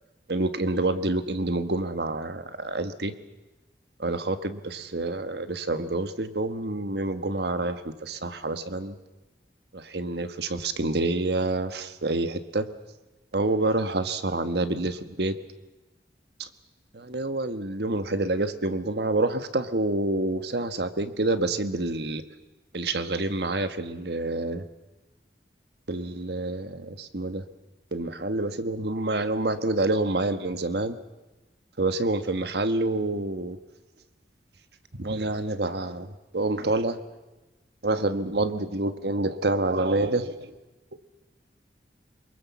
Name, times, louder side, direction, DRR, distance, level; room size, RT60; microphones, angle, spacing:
voice 1, 0.3-3.1 4.0-9.0 9.7-12.7 13.3-15.3 16.4-16.5 16.9-22.2 22.7-24.6 25.9-27.4 27.9-31.0 31.8-33.6 35.0-36.1 36.3-37.0 37.8-40.3 40.9-41.0, right 2 dB, 65° right, 10 dB, 1.4 m, -27 dB
24.0 x 22.0 x 7.1 m, 1.1 s
head